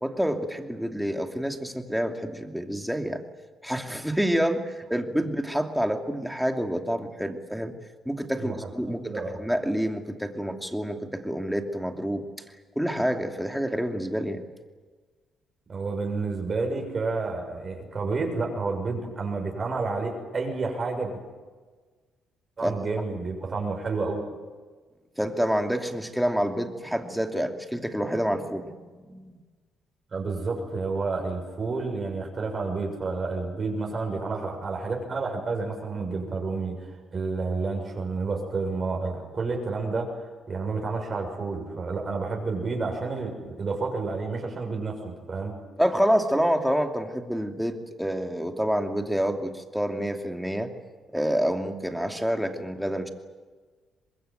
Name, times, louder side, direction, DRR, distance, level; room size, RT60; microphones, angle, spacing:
voice 1, 0.0-3.2 3.6-7.7 8.0-12.2 12.8-14.4 22.6-22.8 25.2-29.4 45.8-50.7 51.1-53.1, equal, ahead, 5 dB, 2.6 m, -28 dB
voice 2, 8.8-9.4 15.7-21.2 22.6-24.3 30.1-45.6, right 3 dB, 40° right, 2 dB, 6.9 m, -30 dB
25.0 x 21.0 x 9.2 m, 1.4 s
cardioid pair, 90°, 0 cm